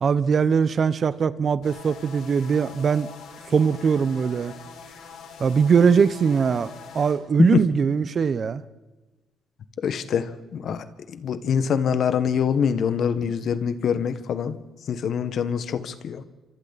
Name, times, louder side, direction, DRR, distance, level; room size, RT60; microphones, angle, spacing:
voice 1, 0.0-3.1 3.5-4.5 5.4-8.6, right 6 dB, 50° right, 0.9 m, -21 dB
sound 1, 1.6-7.1, left 6 dB, 85° left, 4.8 m, -43 dB
voice 2, 9.8-10.9 11.1-14.6 14.9-16.2, left 7 dB, 65° left, 1.4 m, -24 dB
28.0 x 26.0 x 4.2 m
cardioid pair, 90°, 0 cm